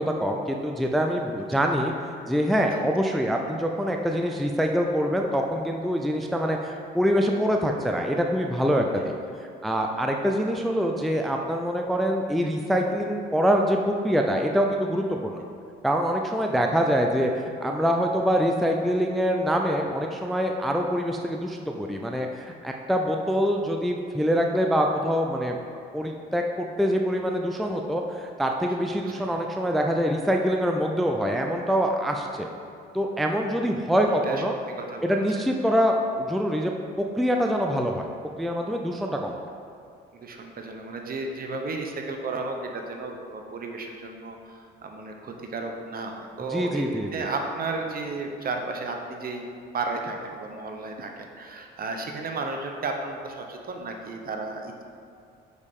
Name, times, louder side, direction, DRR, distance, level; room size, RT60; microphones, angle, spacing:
voice 1, 0.0-1.9 2.3-9.1 9.6-15.4 15.8-25.6 25.9-32.5 32.9-34.5 35.0-36.7 37.0-38.1 38.4-39.4 46.5-47.3, equal, ahead, 2 dB, 0.4 m, -25 dB
voice 2, 34.0-34.4 34.8-35.2 40.1-49.5 49.7-54.8, right 3 dB, 45° right, 3 dB, 0.8 m, -33 dB
6.4 x 5.0 x 3.6 m, 2.3 s
cardioid pair, 85°, 21 cm